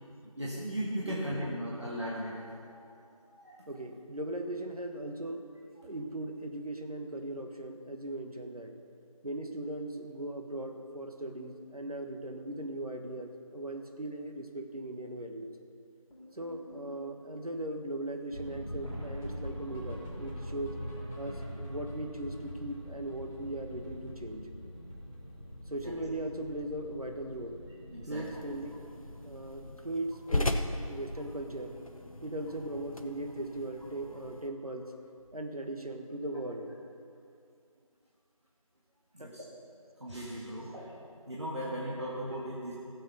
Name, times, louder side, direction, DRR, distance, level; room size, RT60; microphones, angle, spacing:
voice 1, 0.4-3.6 25.8-25.9 27.9-28.3 39.1-39.4 40.0-40.9 41.3-42.7, equal, 50° right, -6 dB, 1.8 m, -37 dB
voice 2, 1.0-1.3 3.7-5.5 5.8-8.8 9.2-15.5 16.3-20.8 21.2-24.5 25.7-27.6 28.0-28.9 29.2-31.8 32.2-34.9 35.3-36.7 39.2-39.3 41.0-41.1, right 1 dB, 80° right, 4 dB, 1.5 m, -39 dB
sound 1, 16.1-24.3 24.6-24.7 24.9-25.1 25.4-26.0 26.3-26.5 27.3-27.4 27.8-27.9 28.2-28.4 30.6-30.7 33.1-33.2, equal, 5° left, 2.0 m, -53 dB
sound 2, 18.3-29.7, equal, 45° left, 2.0 m, -43 dB
sound 3, 28.2-34.5, left 1 dB, 65° left, 1.0 m, -38 dB
15.5 x 7.5 x 5.6 m, 2.4 s
figure-of-eight pair, 175°, 19 cm